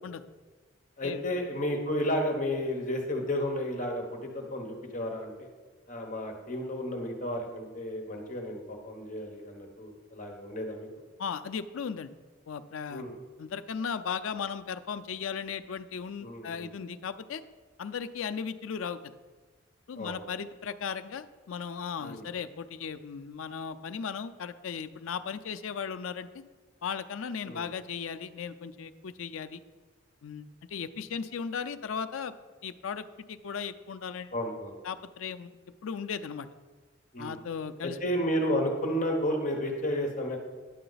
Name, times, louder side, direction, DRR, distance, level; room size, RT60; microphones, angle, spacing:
voice 1, 1.0-5.3 5.9-10.9 12.9-13.1 16.2-16.7 20.0-20.2 22.0-22.2 27.4-27.7 34.3-34.8 37.1-37.4 37.8-40.4, equal, 40° left, 2 dB, 1.1 m, -32 dB
voice 2, 11.2-12.1 12.5-13.0 13.4-17.4 17.8-19.1 19.9-26.4 26.8-29.6 30.2-32.3 32.6-34.3 34.8-35.5 35.8-36.5 37.2-38.0, left 6 dB, 90° left, 11 dB, 0.4 m, -36 dB
10.0 x 6.7 x 4.0 m, 1.3 s
head